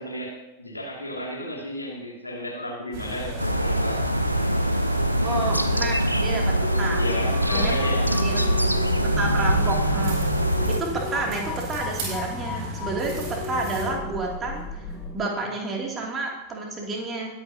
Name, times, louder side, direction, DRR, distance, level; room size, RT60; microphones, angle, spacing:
voice 1, 0.0-4.0 6.9-8.1, left 1 dB, 85° left, -1 dB, 2.5 m, -33 dB
sound 1, 2.9-13.9, right 2 dB, 40° right, 5.1 m, -35 dB
sound 2, 3.4-10.8, equal, 90° right, 0.6 m, -23 dB
voice 2, 5.2-7.1 7.5-7.7 8.1-8.4 9.0-10.3 10.7-17.3, right 2 dB, 25° right, -1 dB, 2.7 m, -30 dB
sound 3, 6.6-15.2, left 5 dB, 20° left, 2.1 m, -35 dB
21.0 x 8.8 x 2.9 m, 1.0 s
figure-of-eight pair, 90°, 0 cm